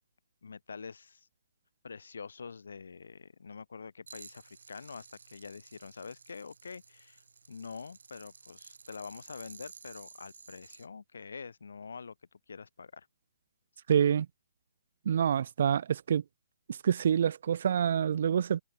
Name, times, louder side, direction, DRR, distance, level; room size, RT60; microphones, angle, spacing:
voice 1, 0.4-1.3 1.8-12.1 12.5-13.1, left 5 dB, 85° left, 3.4 m, -46 dB
sound 1, 4.1-10.9, right 5 dB, 85° right, 2.4 m, -53 dB
voice 2, 13.9-14.3 15.1-16.2 16.8-18.6, right 8 dB, 50° right, 0.4 m, -26 dB
hypercardioid pair, 170°, 0 cm